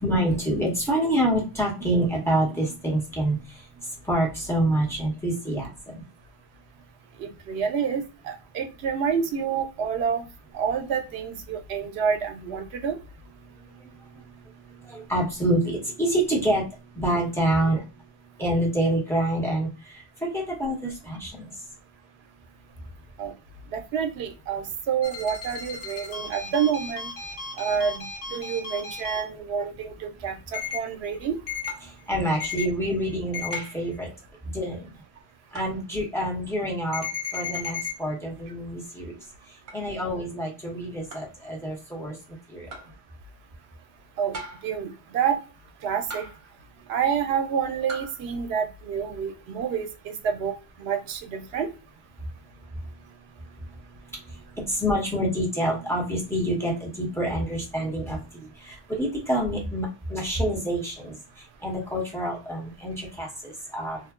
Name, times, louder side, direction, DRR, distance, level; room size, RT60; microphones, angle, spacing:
voice 1, 0.0-3.6 4.1-6.0 14.8-16.7 16.9-17.8 18.4-21.4 31.8-34.1 34.5-34.9 35.5-37.1 37.3-39.1 39.7-42.2 42.5-42.7 54.5-61.2 61.6-64.0, right 1 dB, 5° left, -2 dB, 0.9 m, -27 dB
voice 2, 7.2-10.3 10.5-13.0 23.2-23.3 23.7-27.1 27.6-31.4 44.2-44.4 44.6-45.4 45.8-46.2 46.9-51.7, right 7 dB, 85° right, 5 dB, 0.9 m, -28 dB
sound 1, 25.0-29.2 30.5-30.8 31.5-31.7 32.4-32.7 33.3-33.6 36.9-37.9, left 6 dB, 60° left, 1.0 m, -34 dB
sound 2, 31.7-32.0 33.5-33.9 35.5-35.8 37.5-37.7 39.7-39.8 41.1-41.4 42.7-43.0 44.3-44.8 46.1-46.5 47.9-48.2, right 3 dB, 50° right, 0.9 m, -40 dB
2.2 x 2.1 x 3.6 m, 0.31 s
omnidirectional pair, 1.1 m